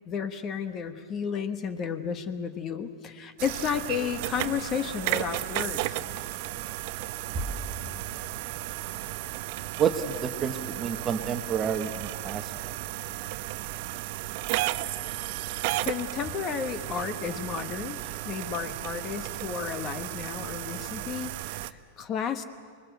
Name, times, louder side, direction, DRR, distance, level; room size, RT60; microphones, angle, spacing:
voice 1, 0.1-6.0 15.8-22.4, left 7 dB, 25° left, 10 dB, 1.1 m, -33 dB
sound 1, 3.4-21.7, right 16 dB, 50° right, 0.8 m, -34 dB
voice 2, 9.8-12.5, right 7 dB, 20° right, 7 dB, 1.2 m, -29 dB
25.5 x 21.5 x 8.0 m, 2.1 s
supercardioid pair, 160°, 0 cm